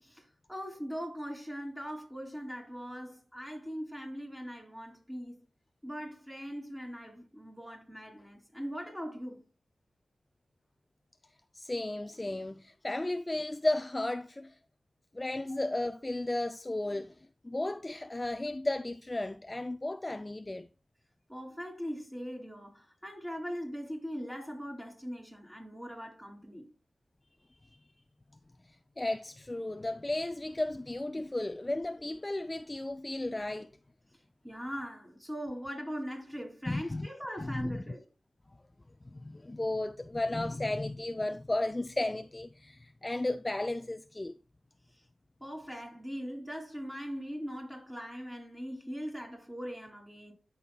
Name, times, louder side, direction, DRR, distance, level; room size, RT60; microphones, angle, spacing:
voice 1, 0.0-5.4 5.8-9.4 15.5-15.6 21.3-26.7 34.4-38.1 44.9-45.0 45.4-50.3, equal, 5° right, 2.9 m, -40 dB
voice 2, 11.5-14.6 15.1-17.1 17.4-20.7 29.0-33.7 36.7-37.1 37.4-37.7 39.1-44.4, left 2 dB, 20° left, 0.3 m, -34 dB
12.5 x 5.5 x 2.2 m
wide cardioid pair, 80°, 0 cm